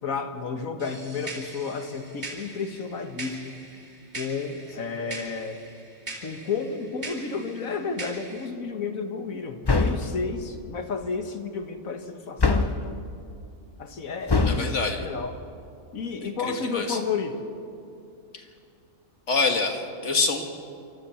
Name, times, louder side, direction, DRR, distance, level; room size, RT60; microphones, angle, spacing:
voice 1, 0.0-3.6 4.1-5.6 6.2-13.1 13.8-15.4 15.9-17.4, left 5 dB, 80° left, 6 dB, 1.8 m, -32 dB
sound 1, 0.8-8.5, right 2 dB, 40° right, 3.0 m, -41 dB
sound 2, 9.6-10.2 12.4-12.9 14.3-14.7, left 3 dB, 25° left, 0.6 m, -22 dB
voice 2, 14.5-15.1 16.7-17.0 18.3-18.4 19.3-20.5, left 4 dB, 60° left, 4 dB, 2.1 m, -25 dB
28.0 x 13.5 x 7.1 m, 2.5 s
omnidirectional pair, 1.4 m